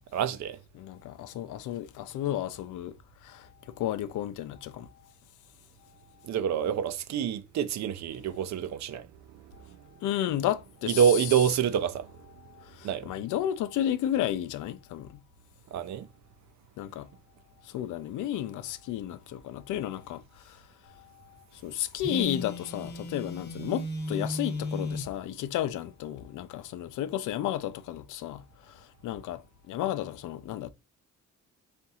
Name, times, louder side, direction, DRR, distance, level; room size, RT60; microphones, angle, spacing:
voice 1, 0.1-0.6 6.2-9.1 10.8-12.1 12.8-13.1 15.7-16.0, right 8 dB, 65° right, 0.6 m, -27 dB
voice 2, 0.7-2.9 3.2-3.5 3.8-4.9 10.0-11.0 12.5-15.1 16.8-17.1 17.7-20.6 21.0-21.1 21.6-29.4 29.7-30.7, left 12 dB, 80° left, 0.6 m, -32 dB
Telephone, 22.0-25.1, left 1 dB, 35° left, 0.8 m, -35 dB
3.5 x 2.6 x 4.1 m
cardioid pair, 90°, 30 cm